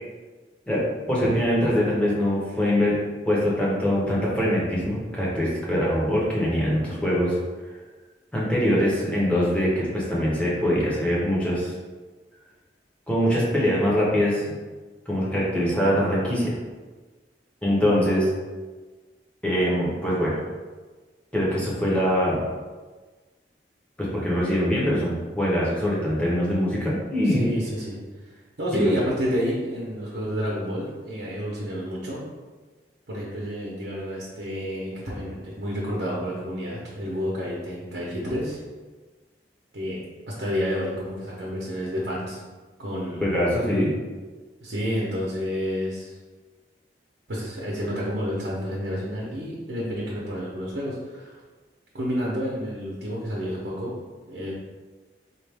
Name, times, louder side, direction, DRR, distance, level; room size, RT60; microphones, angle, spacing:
voice 1, 0.7-3.0 3.2-7.4 8.3-11.7 13.1-14.4 15.1-16.6 17.6-18.3 19.4-20.4 21.3-22.5 24.0-27.5 28.7-28.9 43.2-43.9, equal, 5° left, -6 dB, 0.9 m, -23 dB
voice 2, 27.2-28.0 28.3-32.2 33.1-38.6 39.7-40.0 40.4-42.4 42.8-43.2 44.6-46.1 47.3-51.4 51.9-53.9 54.3-54.5, equal, 70° right, -6 dB, 0.9 m, -29 dB
4.3 x 2.5 x 3.4 m, 1.3 s
head